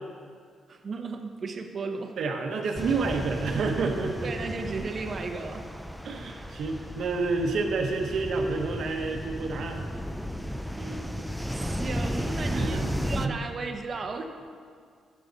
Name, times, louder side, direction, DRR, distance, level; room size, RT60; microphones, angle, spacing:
voice 1, 0.7-2.2 4.2-5.7 10.7-14.3, right 4 dB, 35° right, 5 dB, 0.9 m, -35 dB
voice 2, 2.2-4.3 6.0-9.9 12.5-13.4, right 4 dB, 60° right, 2 dB, 1.1 m, -29 dB
sound 1, 2.8-13.3, equal, ahead, 0.4 m, -34 dB
17.5 x 7.5 x 4.1 m, 2.1 s
cardioid pair, 155°, 0 cm